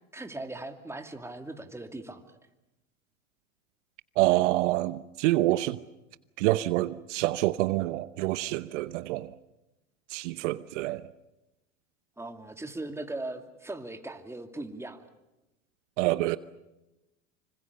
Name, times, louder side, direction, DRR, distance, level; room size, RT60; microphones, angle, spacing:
voice 1, 0.1-2.4 12.2-15.0, right 2 dB, 5° right, 2.6 m, -39 dB
voice 2, 4.2-5.8 6.4-9.3 10.1-11.0 16.0-16.4, right 17 dB, 65° right, 1.0 m, -27 dB
26.0 x 25.0 x 6.9 m
hypercardioid pair, 95°, 38 cm